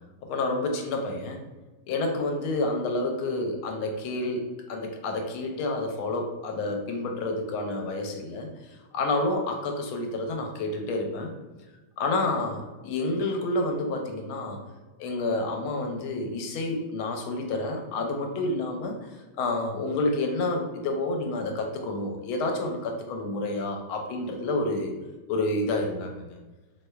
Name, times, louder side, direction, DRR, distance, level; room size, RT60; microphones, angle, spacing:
voice 1, 0.3-1.4 1.9-8.5 8.9-11.3 12.0-14.6 15.0-19.1 19.4-24.9 25.3-26.3, left 2 dB, 80° left, 3 dB, 1.4 m, -29 dB
3.3 x 3.2 x 2.2 m, 1.2 s
omnidirectional pair, 2.3 m